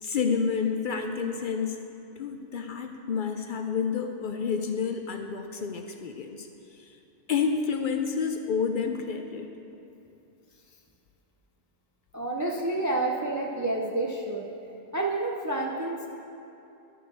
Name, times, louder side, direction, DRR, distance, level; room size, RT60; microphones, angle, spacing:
voice 1, 0.0-1.8 2.2-6.5 6.8-6.9 7.3-9.5, left 6 dB, 55° left, 5 dB, 0.6 m, -29 dB
voice 2, 12.1-14.5 14.9-16.1, right 2 dB, 25° right, 0 dB, 0.4 m, -29 dB
11.5 x 5.0 x 6.2 m, 2.7 s
omnidirectional pair, 1.2 m